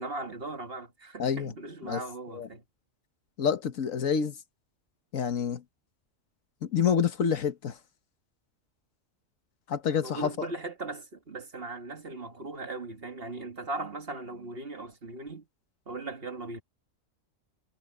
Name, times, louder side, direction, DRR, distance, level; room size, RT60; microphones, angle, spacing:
voice 1, 0.0-2.6 10.0-15.5 15.9-16.6, right 2 dB, 50° right, 2.0 m, -38 dB
voice 2, 1.2-1.5 1.8-2.0 2.3-2.5 3.4-4.4 5.1-5.6 6.6-7.8 9.7-10.5, left 7 dB, 90° left, 1.6 m, -28 dB
omnidirectional pair, 1.3 m